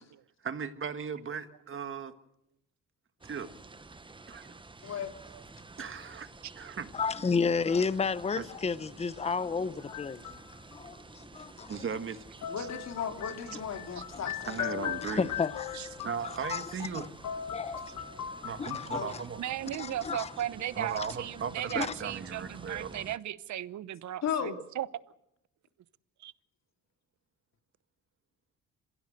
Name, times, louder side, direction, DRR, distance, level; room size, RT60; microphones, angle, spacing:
voice 1, 0.4-2.1 3.2-3.5 4.3-4.5 4.8-4.9 5.8-6.3 6.6-6.9 8.4-8.5 11.7-12.2 14.5-15.3 16.0-17.1 18.4-19.4 20.8-23.1, right 6 dB, 45° right, 1.7 m, -37 dB
sound 1, 3.2-23.2, right 3 dB, 15° right, 1.1 m, -51 dB
voice 2, 6.9-10.4 10.7-11.8 14.1-14.6 15.0-15.8 16.2-17.1 17.5-17.9 18.6-19.2 19.8-20.3 21.0-21.1 21.7-21.9, left 5 dB, 20° left, 0.8 m, -32 dB
sound 2, 9.8-10.8 12.4-17.0 17.2-19.4, left 10 dB, 80° left, 1.5 m, -39 dB
voice 3, 12.5-14.9 18.9-19.1 24.2-24.6, left 7 dB, 60° left, 3.0 m, -36 dB
voice 4, 19.4-24.9 26.2-26.3, right 12 dB, 70° right, 0.9 m, -36 dB
26.5 x 16.5 x 7.9 m
cardioid pair, 90°, 30 cm